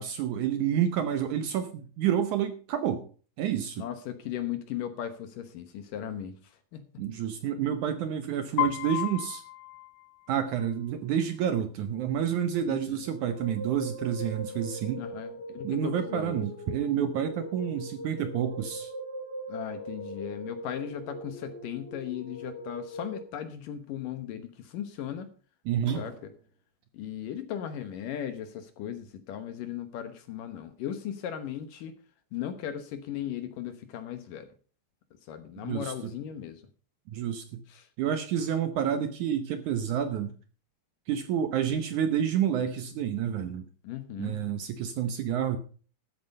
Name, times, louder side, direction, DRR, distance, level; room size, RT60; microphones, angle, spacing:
voice 1, 0.0-3.0 3.4-3.9 7.0-9.4 10.3-15.0 15.6-18.9 25.6-26.0 35.6-35.9 37.1-37.6 38.0-40.3 41.1-43.7 44.2-45.6, right 9 dB, 75° right, 10 dB, 1.8 m, -29 dB
voice 2, 3.8-6.4 6.7-7.0 12.7-13.0 15.0-16.4 19.5-25.3 26.0-26.3 26.9-31.9 32.3-34.5 35.3-36.6 37.7-37.9 43.8-44.4, left 10 dB, 70° left, 10 dB, 2.4 m, -37 dB
Piano, 8.6-10.6, left 17 dB, 85° left, 2.8 m, -33 dB
sound 1, 13.0-23.2, equal, 5° left, 2.0 m, -40 dB
sound 2, 25.8-26.7, right 4 dB, 40° right, 1.6 m, -46 dB
13.5 x 8.7 x 5.3 m, 0.40 s
omnidirectional pair, 4.6 m